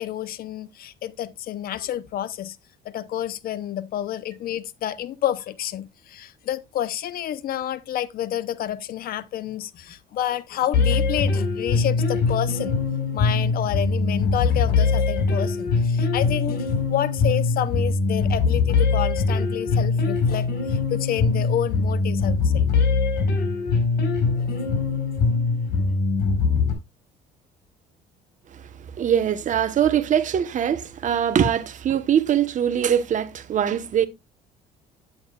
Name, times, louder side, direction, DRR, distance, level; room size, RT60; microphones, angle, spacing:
voice 1, 0.0-2.6 2.8-12.8 13.1-22.7 24.4-24.5, left 11 dB, 60° left, 0.8 m, -29 dB
sound 1, 10.7-26.7, left 4 dB, 75° left, 4.2 m, -22 dB
voice 2, 28.5-34.1, right 9 dB, 50° right, 1.1 m, -22 dB
9.6 x 8.9 x 2.4 m
cardioid pair, 110°, 17 cm